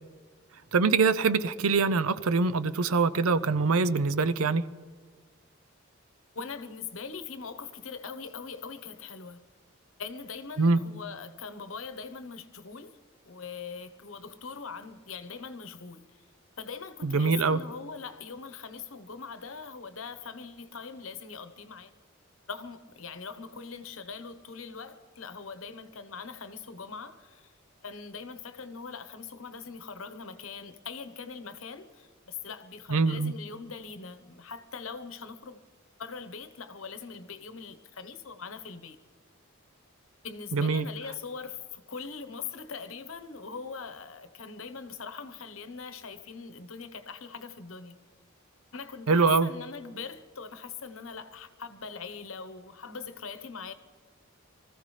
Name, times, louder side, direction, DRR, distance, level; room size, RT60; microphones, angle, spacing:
voice 1, 0.7-4.7 10.6-10.8 17.0-17.6 32.9-33.3 40.5-40.9 49.1-49.5, right 4 dB, 80° right, 0.6 m, -24 dB
voice 2, 6.3-9.5 10.0-13.0 13.3-16.1 16.6-21.9 22.5-27.5 27.8-35.6 36.0-39.0 40.2-48.0 48.7-53.7, left 5 dB, 70° left, 1.0 m, -41 dB
24.5 x 14.5 x 3.3 m
head